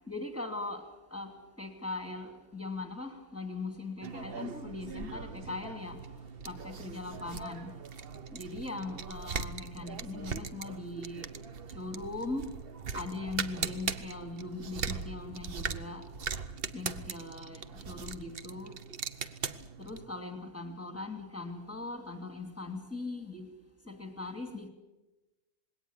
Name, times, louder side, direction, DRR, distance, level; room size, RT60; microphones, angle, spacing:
voice 1, 0.1-0.8 1.1-1.3 1.6-6.0 6.4-7.7 8.3-11.3 11.7-12.5 12.9-16.0 16.7-18.8 19.8-23.5 23.9-24.7, left 3 dB, 10° left, 2.4 m, -40 dB
sound 1, 4.0-20.1, right 6 dB, 45° right, 0.9 m, -40 dB
20.5 x 17.5 x 9.9 m
omnidirectional pair, 1.7 m